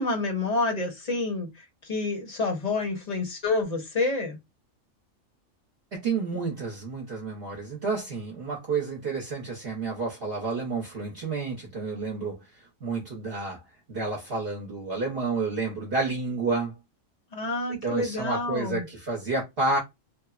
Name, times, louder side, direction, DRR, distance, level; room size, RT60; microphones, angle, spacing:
voice 1, 0.0-1.5 1.8-4.4 17.3-18.8, left 3 dB, 35° left, 0.8 m, -28 dB
voice 2, 5.9-12.4 12.8-13.6 13.9-16.7 17.8-19.8, right 3 dB, 50° right, 1.0 m, -30 dB
3.0 x 2.0 x 2.4 m
omnidirectional pair, 1.3 m